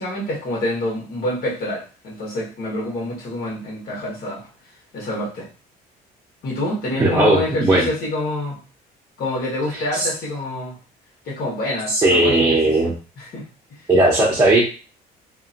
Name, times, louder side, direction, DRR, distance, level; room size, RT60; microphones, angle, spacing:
voice 1, 0.0-4.5 4.9-5.5 6.4-8.6 9.2-10.7 11.2-12.9 13.2-13.4 13.7-13.8, left 1 dB, 65° left, -4 dB, 1.6 m, -27 dB
voice 2, 7.0-7.9 9.7-10.1 11.9-12.9 13.9-14.6, right 2 dB, 20° right, -4 dB, 0.8 m, -17 dB
2.9 x 2.7 x 2.5 m, 0.35 s
cardioid pair, 110°, 17 cm